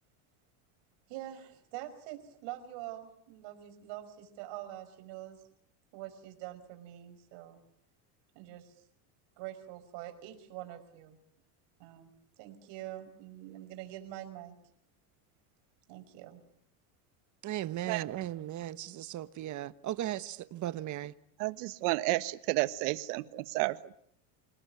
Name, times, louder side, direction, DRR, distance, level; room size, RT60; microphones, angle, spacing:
voice 1, 1.1-5.4 5.9-7.6 8.3-8.8 9.4-11.2 11.8-14.5 15.9-16.4, right 13 dB, 65° right, 5.5 m, -45 dB
voice 2, 17.4-21.1, right 13 dB, 40° right, 1.3 m, -37 dB
voice 3, 21.4-23.9, right 20 dB, 80° right, 1.6 m, -31 dB
28.0 x 19.0 x 9.8 m
cardioid pair, 140°, 46 cm